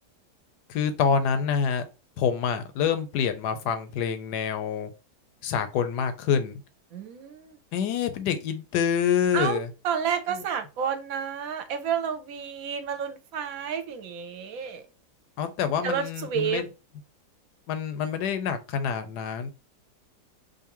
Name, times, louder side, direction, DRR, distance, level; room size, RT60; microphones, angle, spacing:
voice 1, 0.7-1.8 2.2-4.9 5.4-6.6 7.7-9.7 10.3-10.4 15.4-16.7 17.7-19.5, left 7 dB, 80° left, 1.2 m, -26 dB
voice 2, 6.9-7.6 9.3-9.6 9.8-14.8 15.8-16.6, right 7 dB, 65° right, 1.0 m, -30 dB
4.8 x 2.6 x 2.9 m
omnidirectional pair, 1.8 m